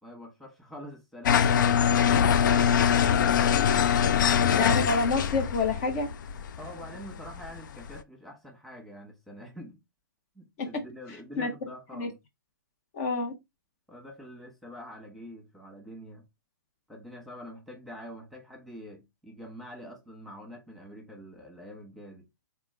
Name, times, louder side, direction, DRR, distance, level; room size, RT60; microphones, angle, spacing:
voice 1, 0.0-2.7 6.6-9.8 10.3-12.2 13.9-16.2 16.9-22.2, equal, ahead, 1.3 m, -45 dB
sound 1, 1.2-8.0, left 8 dB, 65° left, 0.5 m, -23 dB
voice 2, 4.6-6.1 10.6-10.7 11.4-11.5 11.9-12.1 12.9-13.3, left 3 dB, 45° left, 1.0 m, -27 dB
3.6 x 3.5 x 3.3 m
hypercardioid pair, 130°, 11 cm